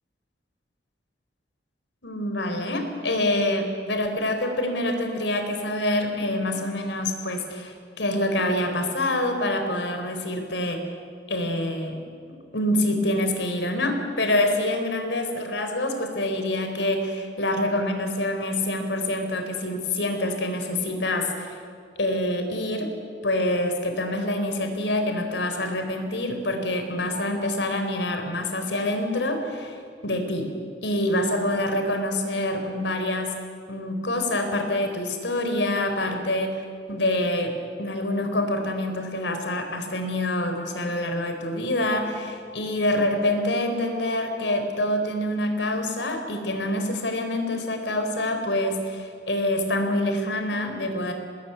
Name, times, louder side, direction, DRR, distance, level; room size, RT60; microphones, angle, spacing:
voice 1, 2.0-10.9 11.3-12.0 12.5-21.6 22.0-22.9 23.2-30.5 30.8-33.4 33.7-36.6 36.9-51.1, left 1 dB, 75° left, 5 dB, 4.2 m, -26 dB
25.5 x 20.0 x 9.7 m, 2.2 s
head